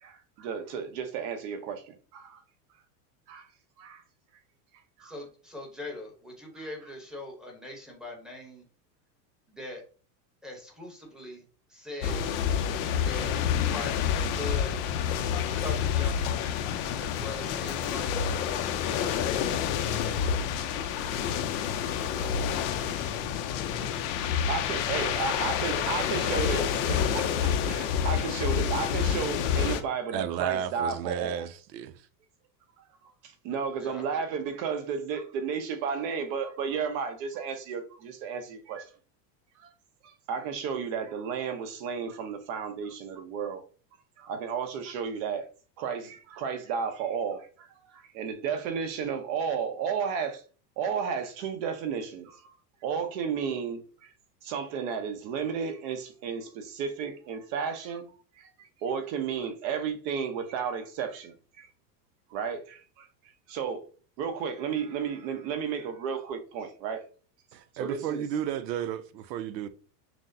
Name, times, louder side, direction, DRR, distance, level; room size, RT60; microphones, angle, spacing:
voice 1, 0.0-2.4 3.3-3.5 3.8-4.0 5.0-5.1 23.8-23.9 24.3-31.4 32.8-32.9 33.2-38.9 39.6-39.7 40.0-43.6 44.2-45.5 45.8-47.7 47.9-50.4 50.8-52.6 52.8-54.1 54.4-58.1 58.4-61.7 62.3-63.1 63.5-63.8 64.2-67.0 67.7-68.2, right 6 dB, 55° right, 0.9 m, -33 dB
voice 2, 5.0-8.7 9.5-9.8 10.4-11.4 11.7-12.3 13.0-14.8 15.6-16.2 17.0-18.3 33.8-34.2, left 2 dB, ahead, 0.9 m, -41 dB
sound 1, 12.0-29.8, left 8 dB, 50° left, 0.5 m, -28 dB
voice 3, 30.1-32.0 67.5-69.7, right 9 dB, 90° right, 0.6 m, -33 dB
6.1 x 2.1 x 2.6 m
supercardioid pair, 135°, 50 cm